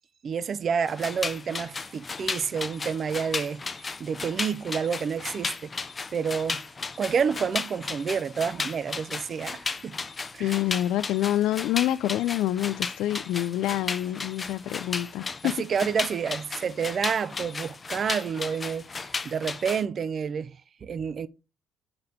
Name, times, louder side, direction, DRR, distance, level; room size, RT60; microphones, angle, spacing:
voice 1, 0.2-3.6 4.0-5.7 6.1-6.6 7.0-10.0 10.3-10.5 15.4-21.3, right 6 dB, 40° right, 0.3 m, -29 dB
sound 1, 0.9-19.8, left 4 dB, 25° left, 0.4 m, -35 dB
voice 2, 10.4-15.6, left 13 dB, 85° left, 0.3 m, -27 dB
6.6 x 4.2 x 4.1 m
cardioid pair, 140°, 0 cm